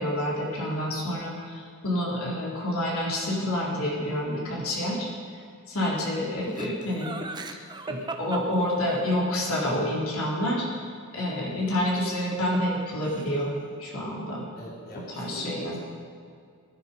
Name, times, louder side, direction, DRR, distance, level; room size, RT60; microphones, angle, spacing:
voice 1, 0.0-5.1 5.7-7.1 7.9-10.7 11.1-13.5 13.8-14.4 15.2-15.8, left 1 dB, 75° left, -4 dB, 3.7 m, -28 dB
Laughter, 6.5-9.2 12.0-12.8 13.0-13.6, right 2 dB, 20° right, 0.9 m, -37 dB
voice 2, 14.6-15.8, equal, 45° left, -4 dB, 3.4 m, -42 dB
19.5 x 12.0 x 5.3 m, 2.2 s
head